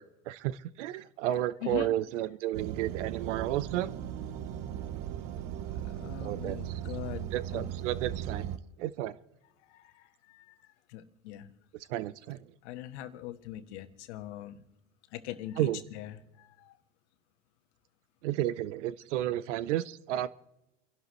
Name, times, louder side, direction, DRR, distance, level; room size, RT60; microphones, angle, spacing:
voice 1, 0.0-3.9 6.2-6.7 7.3-8.5 8.8-9.2 11.9-12.4 15.6-15.8 18.2-20.3, right 13 dB, 80° right, 18 dB, 0.8 m, -32 dB
sound 1, 2.5-8.6, right 10 dB, 50° right, 1.0 m, -37 dB
voice 2, 5.8-7.7 9.7-11.5 12.6-14.6 15.1-16.7, left 13 dB, 70° left, 8 dB, 1.4 m, -42 dB
29.5 x 11.5 x 3.1 m, 0.93 s
supercardioid pair, 115°, 36 cm